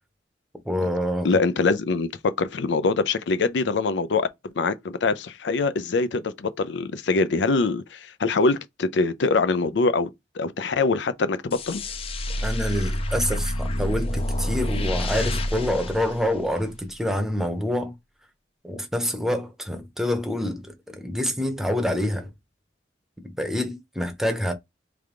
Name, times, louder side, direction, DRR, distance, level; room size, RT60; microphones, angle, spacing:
voice 1, 0.7-1.4 12.4-17.9 18.6-22.3 23.2-24.5, left 1 dB, 5° right, 0.7 m, -26 dB
voice 2, 1.2-2.1 2.4-10.1 10.4-11.8, left 3 dB, 85° left, 0.5 m, -23 dB
sound 1, 11.5-16.9, left 1 dB, 35° left, 0.5 m, -28 dB
3.4 x 3.3 x 3.7 m
head